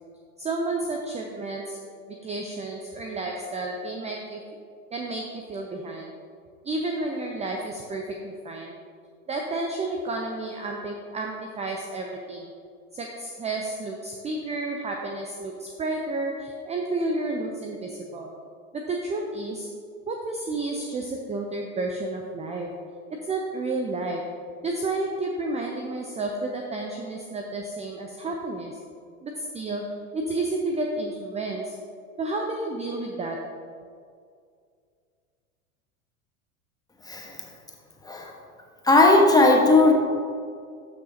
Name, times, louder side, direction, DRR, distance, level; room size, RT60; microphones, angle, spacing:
voice 1, 0.4-1.8 2.1-4.4 4.9-6.1 6.6-8.7 9.3-12.5 12.9-18.3 18.7-19.7 20.1-22.7 23.3-24.2 24.6-28.8 29.2-29.8 30.1-31.8 32.2-33.4, right 2 dB, 15° right, 2 dB, 0.6 m, -31 dB
voice 2, 38.8-39.9, left 2 dB, 10° left, 0 dB, 1.2 m, -17 dB
12.5 x 6.1 x 2.8 m, 2.2 s
figure-of-eight pair, 80°, 43 cm